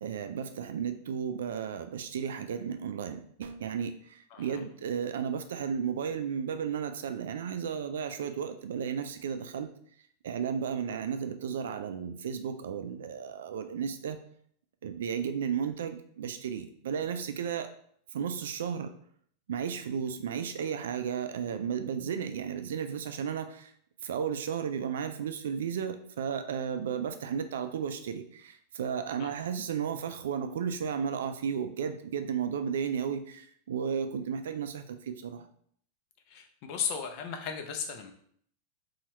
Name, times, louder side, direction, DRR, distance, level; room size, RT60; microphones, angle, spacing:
voice 1, 0.0-3.9 4.4-9.7 10.2-14.2 14.8-17.7 18.1-18.9 19.5-23.7 24.0-35.5, right 7 dB, 85° right, 9 dB, 0.3 m, -34 dB
voice 2, 4.3-4.6 29.2-29.3 36.3-38.1, left 7 dB, 55° left, 5 dB, 0.5 m, -36 dB
2.8 x 2.3 x 3.1 m, 0.63 s
supercardioid pair, 125°, 0 cm